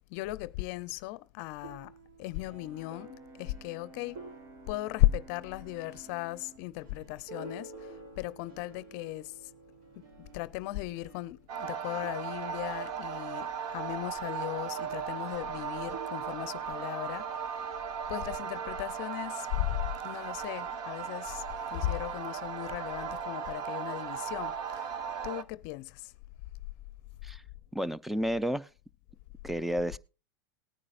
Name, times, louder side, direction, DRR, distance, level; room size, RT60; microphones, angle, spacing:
voice 1, 0.1-1.9 2.2-4.2 4.7-9.4 10.2-17.5 18.1-21.4 21.7-24.9 25.2-26.1, left 17 dB, 55° left, 0.6 m, -36 dB
sound 1, 1.6-11.6 11.9-17.0, right 4 dB, 70° right, 3.1 m, -51 dB
Brass instrument, 2.5-6.7, right 4 dB, 25° right, 1.1 m, -53 dB
sound 2, 11.5-25.4, right 7 dB, 50° right, 1.1 m, -37 dB
voice 2, 27.7-28.7 29.4-30.0, equal, ahead, 0.5 m, -31 dB
19.0 x 9.7 x 2.5 m
hypercardioid pair, 115°, 11 cm